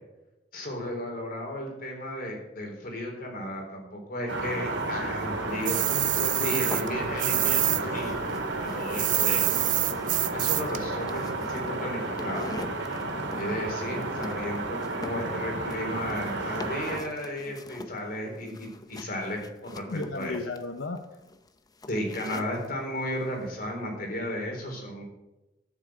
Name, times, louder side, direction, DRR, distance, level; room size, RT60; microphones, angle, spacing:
voice 1, 0.5-5.8 6.4-8.2 8.6-9.5 10.3-12.5 13.4-19.8 20.1-20.4 21.9-25.0, left 1 dB, 50° left, 2 dB, 3.7 m, -34 dB
sound 1, 4.3-17.0, right 2 dB, 70° right, 2.2 m, -32 dB
sound 2, 5.6-7.8 8.1-10.8, right 16 dB, 45° right, 0.5 m, -26 dB
voice 2, 5.9-6.7 15.1-15.3 19.9-21.1, left 3 dB, 85° left, 7 dB, 0.8 m, -35 dB
sound 3, 6.5-7.4 7.7-22.7, left 2 dB, 20° left, 0.7 m, -44 dB
13.0 x 7.5 x 7.7 m, 1.0 s
head